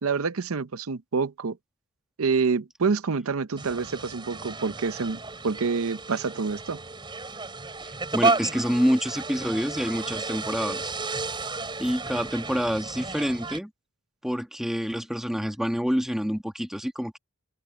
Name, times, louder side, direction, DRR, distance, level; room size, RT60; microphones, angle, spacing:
voice 1, 0.0-1.6 2.2-5.2 5.4-6.8, right 5 dB, 80° right, 0.7 m, -27 dB
sound 1, 3.6-13.6, right 3 dB, 20° right, 4.9 m, -32 dB
voice 2, 7.8-10.9 11.8-13.7 14.2-17.2, equal, ahead, 1.5 m, -27 dB
head